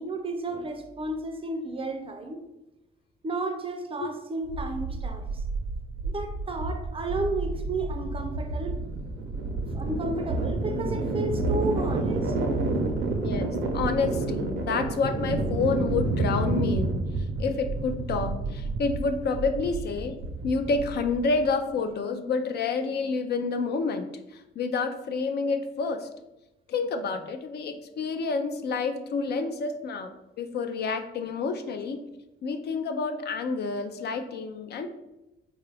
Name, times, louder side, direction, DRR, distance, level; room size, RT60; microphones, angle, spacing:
voice 1, 0.0-2.4 3.2-5.2 6.0-8.8 9.7-12.3, right 2 dB, 30° right, 5 dB, 0.5 m, -32 dB
sound 1, 4.4-21.5, right 2 dB, 80° right, 0.6 m, -29 dB
voice 2, 13.2-17.0 17.4-20.2 20.4-26.1 26.7-32.0 32.4-34.9, left 4 dB, 55° left, 7 dB, 0.4 m, -29 dB
3.7 x 2.4 x 3.3 m, 0.95 s
cardioid pair, 90°, 20 cm